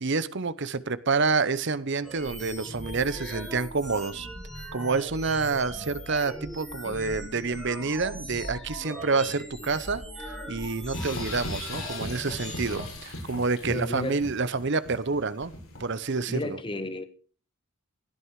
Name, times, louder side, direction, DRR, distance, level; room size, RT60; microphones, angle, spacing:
voice 1, 0.0-4.3 4.7-10.0 10.5-15.5 15.8-16.6, right 4 dB, 55° right, 0.9 m, -28 dB
sound 1, 2.0-13.0, equal, ahead, 7.3 m, -39 dB
sound 2, 10.9-16.1, left 2 dB, 90° left, 7.2 m, -38 dB
voice 2, 13.7-14.2 16.3-17.0, left 1 dB, 25° left, 1.2 m, -32 dB
17.0 x 11.5 x 4.8 m
head